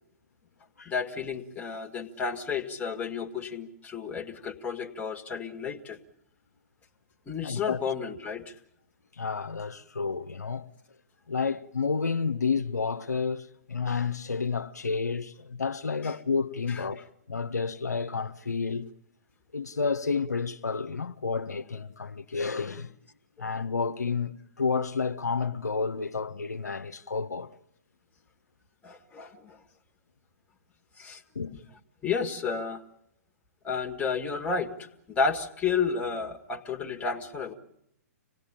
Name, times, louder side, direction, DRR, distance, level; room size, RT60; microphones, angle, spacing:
voice 1, 0.9-6.0 7.3-8.6 16.0-16.1 16.7-16.8 23.4-23.5 28.8-29.6 31.0-31.2 32.0-32.8 33.6-37.5, left 5 dB, 15° left, 1.8 m, -32 dB
voice 2, 7.4-7.8 9.1-10.7 11.3-17.0 17.3-18.9 19.5-22.9 23.4-27.5 31.3-31.5, left 5 dB, 90° left, 1.0 m, -30 dB
26.0 x 18.5 x 8.8 m
hypercardioid pair, 125°, 9 cm